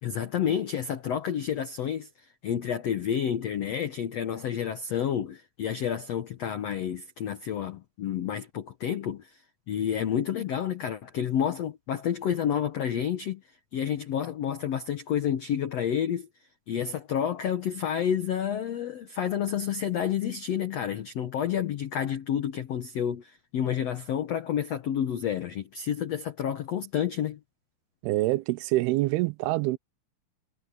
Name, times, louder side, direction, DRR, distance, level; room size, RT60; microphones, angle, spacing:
voice 1, 0.0-2.1 2.4-9.4 9.7-13.4 13.7-16.3 16.7-27.4, left 9 dB, 80° left, 1.4 m, -29 dB
voice 2, 28.0-29.8, right 19 dB, 85° right, 2.5 m, -26 dB
omnidirectional pair, 4.6 m